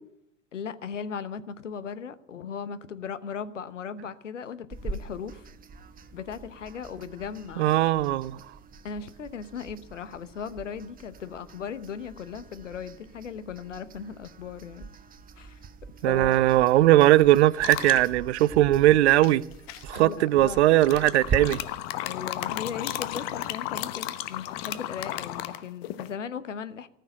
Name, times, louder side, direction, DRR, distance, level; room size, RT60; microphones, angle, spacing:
voice 1, 0.5-5.5 6.1-7.8 8.8-14.9 15.4-15.6 16.0-16.4 19.9-20.6 22.0-26.9, left 7 dB, 75° left, 1.0 m, -37 dB
sound 1, 4.7-21.4, right 4 dB, 25° right, 1.0 m, -42 dB
voice 2, 7.6-8.4 16.0-19.4 19.8-21.6, right 15 dB, 65° right, 0.6 m, -20 dB
sound 2, 17.6-18.1 19.2-20.0 20.8-26.1, left 14 dB, 50° left, 1.1 m, -34 dB
18.5 x 6.6 x 10.0 m
figure-of-eight pair, 80°, 37 cm